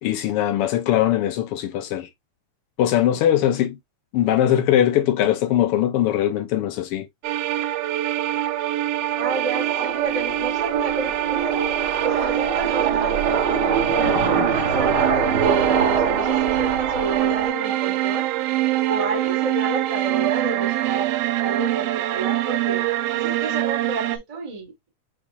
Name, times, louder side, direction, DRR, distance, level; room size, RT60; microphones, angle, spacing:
voice 1, 0.0-2.1 2.8-3.8 4.1-7.1, left 11 dB, 85° left, 1.2 m, -21 dB
sound 1, 7.2-24.2, right 14 dB, 85° right, 1.3 m, -24 dB
voice 2, 9.1-13.2 13.9-18.3 18.9-22.8 23.1-24.9, right 3 dB, 30° right, 0.6 m, -31 dB
sound 2, 9.2-17.5, right 5 dB, 50° right, 1.3 m, -24 dB
6.9 x 3.0 x 2.3 m
omnidirectional pair, 3.3 m